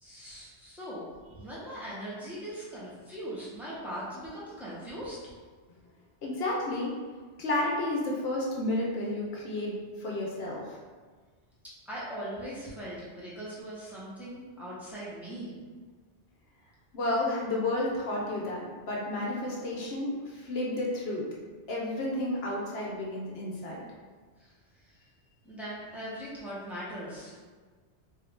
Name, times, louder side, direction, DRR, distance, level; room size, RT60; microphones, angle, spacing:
voice 1, 0.0-5.2 11.9-15.5 24.4-24.5 24.8-25.1 25.4-27.4, equal, ahead, -9 dB, 0.9 m, -40 dB
voice 2, 6.2-7.0 7.4-10.6 16.9-21.3 21.7-23.8, left 1 dB, 65° left, -3 dB, 0.9 m, -31 dB
3.6 x 2.7 x 3.5 m, 1.5 s
omnidirectional pair, 1.2 m